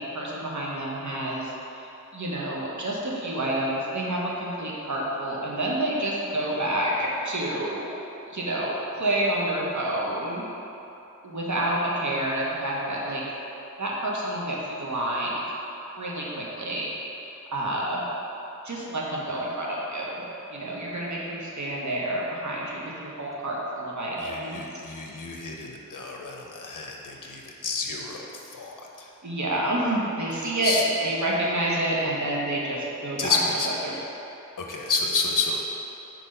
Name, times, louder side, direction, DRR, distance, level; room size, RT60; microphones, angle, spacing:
voice 1, 0.0-1.9 2.1-7.9 8.3-8.7 9.0-10.4 11.2-13.2 13.8-15.4 16.0-16.9 17.2-18.0 18.6-20.2 20.5-24.6 27.3-27.4 29.2-30.7 31.0-33.4 33.8-33.9, right 1 dB, 65° right, -4 dB, 1.1 m, -28 dB
voice 2, 24.2-29.1 30.4-30.8 33.2-33.7 33.9-34.1 34.6-35.6, left 4 dB, 80° left, 0 dB, 0.7 m, -30 dB
4.5 x 4.0 x 5.4 m, 3.0 s
wide cardioid pair, 50°, 32 cm